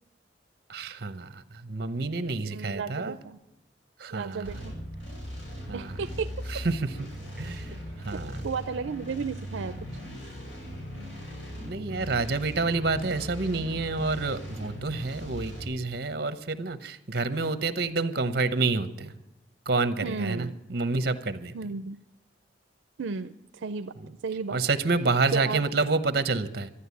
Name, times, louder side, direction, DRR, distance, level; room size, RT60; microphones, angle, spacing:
voice 1, 0.7-3.2 4.0-4.6 5.7-6.0 6.5-6.9 7.4-8.5 11.6-19.1 19.7-21.6 24.0-24.1 24.5-26.7, right 3 dB, 55° right, 12 dB, 0.9 m, -28 dB
voice 2, 2.4-3.4 4.1-4.8 5.7-6.3 8.1-9.9 20.0-20.6 21.5-22.0 23.0-23.9 24.2-24.7 25.3-25.6, right 5 dB, 80° right, 11 dB, 0.5 m, -33 dB
sound 1, 4.4-15.6, equal, 80° left, 5.4 m, -39 dB
13.0 x 9.8 x 8.4 m, 0.90 s
head